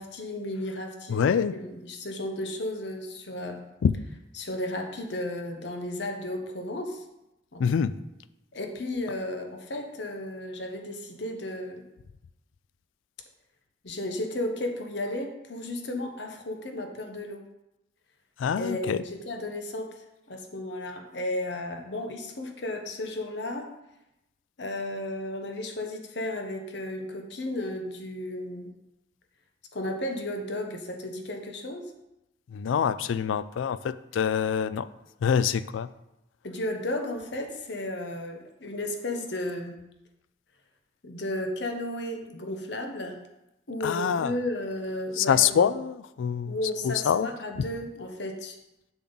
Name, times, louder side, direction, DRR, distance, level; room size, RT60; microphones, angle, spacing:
voice 1, 0.0-3.6 4.3-7.0 7.5-7.6 8.5-11.9 13.8-17.5 18.6-20.0 20.3-23.7 24.6-28.7 29.7-31.8 36.4-39.8 41.0-43.2 43.7-45.7 46.4-48.6, left 1 dB, 65° left, 4 dB, 1.0 m, -34 dB
voice 2, 1.1-1.5 3.8-3.9 7.6-7.9 18.4-19.0 32.5-34.9 35.2-35.9 43.8-44.3 45.2-46.5 46.8-47.3, left 7 dB, 80° left, 15 dB, 0.3 m, -25 dB
7.0 x 6.1 x 4.0 m, 0.90 s
head